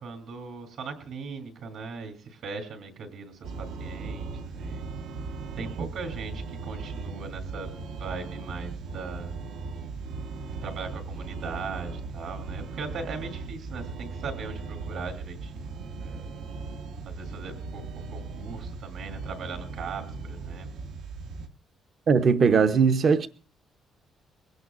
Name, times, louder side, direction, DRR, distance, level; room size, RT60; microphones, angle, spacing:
voice 1, 0.0-4.8 5.6-7.7 8.0-9.3 10.6-16.3 17.0-20.7, right 4 dB, 60° right, 3.2 m, -39 dB
sound 1, 3.4-21.5, right 4 dB, 80° right, 1.2 m, -38 dB
voice 2, 22.1-23.3, right 5 dB, 40° right, 0.6 m, -20 dB
22.0 x 17.0 x 2.5 m
cardioid pair, 170°, 0 cm